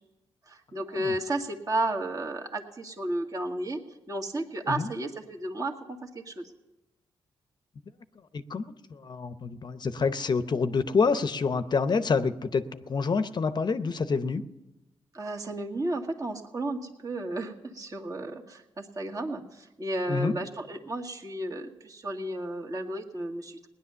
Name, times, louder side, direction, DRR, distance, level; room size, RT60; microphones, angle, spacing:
voice 1, 0.5-6.5 15.1-23.6, right 1 dB, 35° right, 1 dB, 1.9 m, -33 dB
voice 2, 8.3-14.4 20.1-20.3, left 4 dB, 45° left, 11 dB, 0.7 m, -27 dB
18.5 x 10.5 x 6.9 m, 0.98 s
cardioid pair, 75°, 10 cm